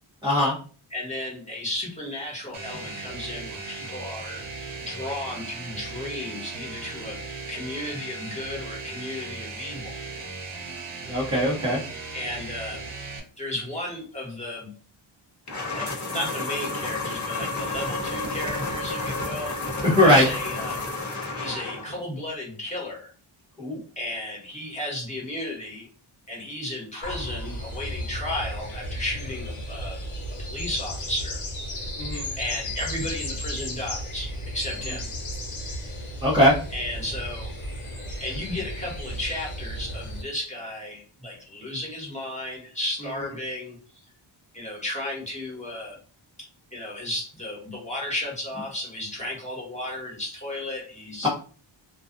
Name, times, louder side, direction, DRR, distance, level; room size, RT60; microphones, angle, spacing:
voice 1, 0.2-0.6 11.1-11.8 19.8-20.3 23.6-23.8 32.0-32.2 36.2-36.5 51.2-51.3, left 1 dB, 10° right, -6 dB, 0.7 m, -19 dB
voice 2, 0.9-4.4 4.8-10.0 12.1-12.8 13.4-14.7 15.7-19.6 20.0-20.8 21.4-23.1 24.0-25.9 26.3-30.0 30.4-31.4 32.4-35.0 36.7-37.5 38.2-43.8 44.5-46.0 46.4-51.3, left 1 dB, 15° left, -3 dB, 1.2 m, -34 dB
sound 1, 2.5-13.2, right 3 dB, 80° right, 0.8 m, -37 dB
sound 2, 15.5-22.0, left 3 dB, 35° left, 0.7 m, -31 dB
sound 3, 27.0-40.2, equal, 90° left, 0.9 m, -34 dB
2.3 x 2.3 x 2.5 m, 0.40 s
wide cardioid pair, 75°, 50 cm